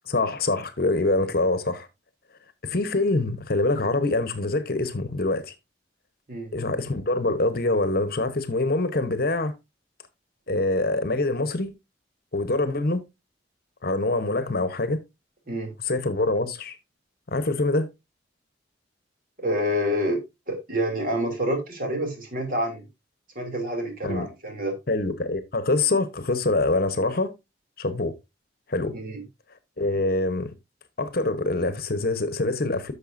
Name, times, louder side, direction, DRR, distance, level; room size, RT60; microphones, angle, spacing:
voice 1, 0.1-1.9 2.6-5.5 6.5-9.5 10.5-11.7 12.3-13.0 13.8-15.0 15.8-16.8 17.3-17.9 24.0-24.3 24.9-27.3 27.8-28.1 28.7-28.9 29.8-30.5 31.0-32.9, left 2 dB, 55° left, 1.0 m, -25 dB
voice 2, 19.4-22.9 23.3-24.8 28.9-29.2, equal, 50° right, 2.9 m, -28 dB
11.0 x 6.6 x 2.6 m
head